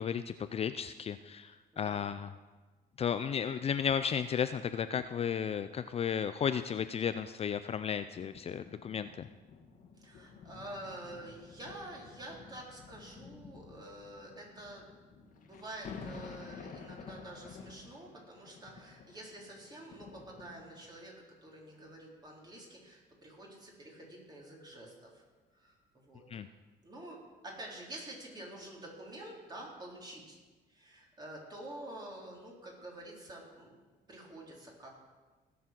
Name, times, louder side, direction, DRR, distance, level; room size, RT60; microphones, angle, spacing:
voice 1, 0.0-2.3 3.0-9.3 26.3-26.5, left 7 dB, 35° left, 11 dB, 0.5 m, -34 dB
voice 2, 1.7-2.1 10.0-21.2 21.4-25.2 25.5-26.5 26.8-27.2 27.4-30.4 30.7-34.9, right 1 dB, 25° right, -2 dB, 4.0 m, -48 dB
sound 1, 8.3-21.1 21.8-21.9, left 5 dB, 50° left, 1.8 m, -51 dB
17.5 x 7.2 x 6.1 m, 1.3 s
cardioid pair, 110°, 17 cm